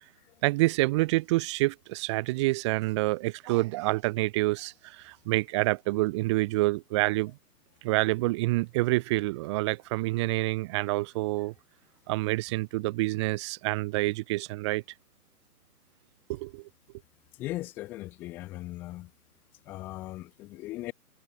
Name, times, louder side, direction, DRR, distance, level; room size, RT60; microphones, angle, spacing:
voice 1, 0.4-7.4 7.8-11.5 12.1-14.8 16.3-16.6, right 21 dB, 20° right, 1.5 m, -27 dB
voice 2, 17.4-19.1 19.7-20.9, left 17 dB, 5° left, 0.7 m, -38 dB
figure-of-eight pair, 140°, 47 cm